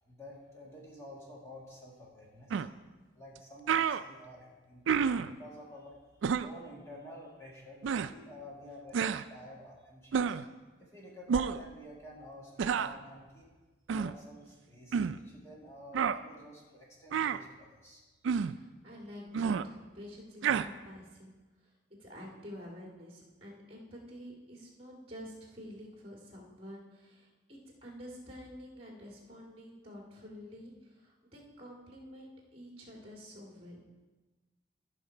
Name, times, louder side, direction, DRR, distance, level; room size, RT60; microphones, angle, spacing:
voice 1, 0.0-2.7 3.1-6.0 6.3-10.3 10.8-13.5 13.9-18.0, left 1 dB, 15° left, -4 dB, 1.7 m, -50 dB
sound 1, 2.5-2.7 3.4-3.5 3.7-4.0 4.9-5.3 6.2-6.5 7.8-8.1 8.9-9.2 10.1-10.5 11.3-11.6 12.6-12.9 13.9-14.1 14.9-15.2 15.9-16.2 17.1-17.4 18.2-18.6 19.3-19.6 20.4-20.7, right 7 dB, 80° right, 0.3 m, -29 dB
voice 2, 18.4-21.3 21.6-21.7 22.0-33.8, equal, 30° right, -1 dB, 2.1 m, -49 dB
13.5 x 5.7 x 4.5 m, 1.2 s
head